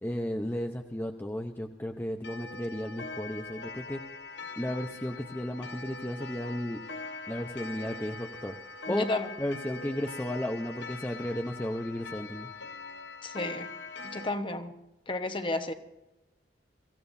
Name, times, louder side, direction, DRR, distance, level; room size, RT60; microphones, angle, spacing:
voice 1, 0.0-4.0 4.6-6.8 7.3-8.6 8.9-9.1 9.4-12.5, left 1 dB, 10° left, 3 dB, 0.8 m, -34 dB
Clock, 2.2-14.3, left 3 dB, 65° left, 1.0 m, -42 dB
voice 2, 8.9-9.3 13.2-13.7 14.0-14.7 15.1-15.7, left 2 dB, 30° left, 8 dB, 1.2 m, -32 dB
24.5 x 16.0 x 2.7 m, 0.97 s
head